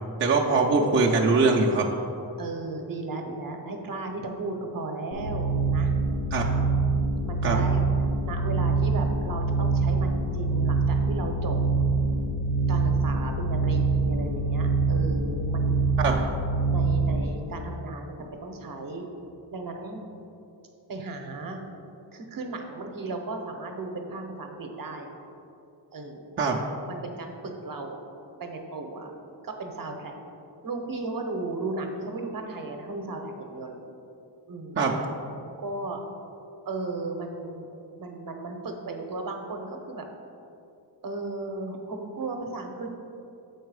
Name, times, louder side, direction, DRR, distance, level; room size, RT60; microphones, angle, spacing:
voice 1, 0.2-1.9 6.3-6.5 7.4-7.6 16.0-16.2 26.4-26.6 34.8-34.9, right 3 dB, 30° right, -2 dB, 0.4 m, -22 dB
voice 2, 2.4-5.9 6.8-7.8 8.2-11.6 12.7-15.8 16.7-19.1 19.5-20.0 20.9-21.6 22.1-25.2 25.9-26.4 26.9-28.0 28.4-29.1 29.4-30.1 30.6-33.9 34.5-34.9 35.6-36.0 36.6-37.7 38.0-40.1 41.0-42.9, right 2 dB, 50° right, 4 dB, 0.8 m, -35 dB
sound 1, 5.1-17.2, right 4 dB, 80° left, 0.9 m, -25 dB
7.2 x 4.7 x 4.7 m, 2.7 s
wide cardioid pair, 175°, 42 cm